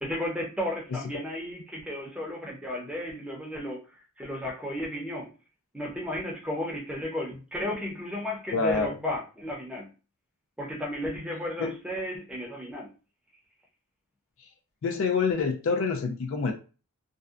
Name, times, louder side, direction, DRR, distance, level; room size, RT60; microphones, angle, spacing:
voice 1, 0.0-5.3 5.7-9.9 10.6-12.9, left 1 dB, 5° right, -1 dB, 0.6 m, -34 dB
voice 2, 8.5-9.0 11.6-11.7 14.8-16.5, left 4 dB, 60° left, 3 dB, 0.4 m, -26 dB
2.6 x 2.1 x 2.4 m, 0.34 s
head